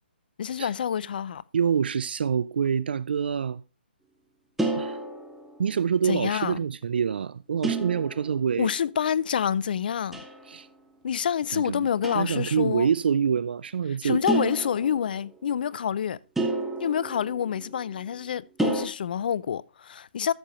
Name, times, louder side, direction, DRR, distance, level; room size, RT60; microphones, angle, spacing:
voice 1, 0.4-1.4 6.1-6.6 8.6-10.2 11.0-12.9 14.0-16.2 16.8-20.3, left 8 dB, 55° left, 0.5 m, -27 dB
voice 2, 1.5-3.6 4.7-5.0 5.6-8.7 10.4-10.7 11.5-11.9 12.1-14.2, right 7 dB, 65° right, 0.4 m, -26 dB
sound 1, 4.6-5.9 7.6-8.8 10.1-10.6 12.0-12.5 14.3-15.4 16.4-18.0 18.6-18.8, right 2 dB, 5° right, 1.2 m, -31 dB
13.5 x 6.6 x 3.0 m
hypercardioid pair, 145°, 6 cm